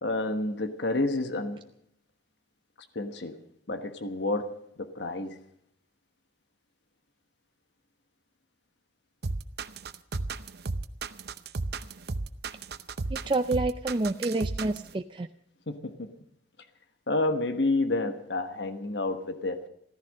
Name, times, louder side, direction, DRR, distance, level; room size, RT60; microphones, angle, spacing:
voice 1, 0.0-1.6 2.9-3.3 3.7-5.4 15.7-16.1 17.1-19.7, left 2 dB, 80° left, 8 dB, 1.3 m, -29 dB
sound 1, 9.2-14.9, right 3 dB, 65° right, 0.7 m, -33 dB
voice 2, 13.1-15.3, right 2 dB, 30° right, 7 dB, 0.5 m, -28 dB
14.5 x 14.5 x 6.5 m, 0.72 s
head